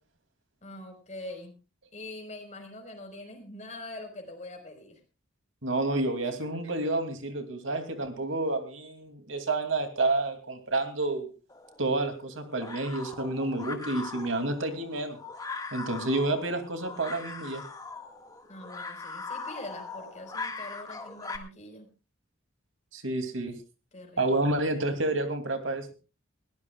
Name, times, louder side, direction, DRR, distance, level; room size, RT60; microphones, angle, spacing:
voice 1, 0.6-1.5 1.9-5.0 6.2-6.5 18.5-21.9 23.9-24.5, left 2 dB, 40° left, 4 dB, 4.8 m, -44 dB
voice 2, 5.6-11.3 11.8-15.2 15.7-17.6 22.9-23.5 24.2-25.9, right 2 dB, 85° right, 7 dB, 2.8 m, -29 dB
sound 1, 11.5-21.4, left 4 dB, 20° left, 1.8 m, -41 dB
21.5 x 17.0 x 2.4 m, 0.32 s
head